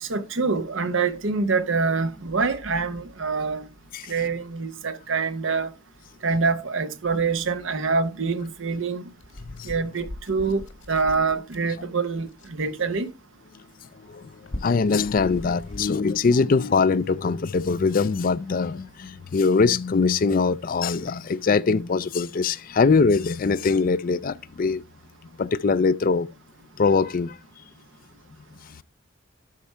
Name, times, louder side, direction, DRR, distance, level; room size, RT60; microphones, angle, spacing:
voice 1, 0.0-3.7 4.1-5.7 6.2-9.1 9.6-10.6 10.9-13.1, right 4 dB, 70° right, 0.8 m, -25 dB
sound 1, 7.8-7.9 9.1-11.8 12.3-13.1 14.3-16.2 16.5-16.8 17.6-19.0 19.4-19.5 20.2-20.3 21.0-21.6, left 1 dB, 75° left, 1.5 m, -41 dB
voice 2, 14.6-24.8 25.4-26.3 26.8-27.4, left 4 dB, 45° left, 0.4 m, -22 dB
12.5 x 4.7 x 4.4 m
head